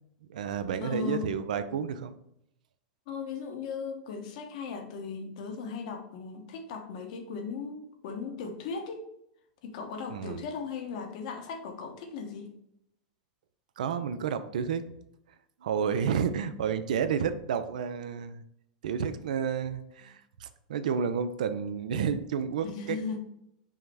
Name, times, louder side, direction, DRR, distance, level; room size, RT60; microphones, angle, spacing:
voice 1, 0.3-2.2 10.1-10.4 13.8-14.8 15.6-18.4 18.8-23.2, right 7 dB, 85° right, 11 dB, 0.4 m, -31 dB
voice 2, 0.8-1.3 3.1-9.1 9.6-12.5 22.6-23.2, left 5 dB, 65° left, 5 dB, 0.9 m, -37 dB
5.5 x 2.1 x 4.7 m, 0.78 s
supercardioid pair, 125°, 4 cm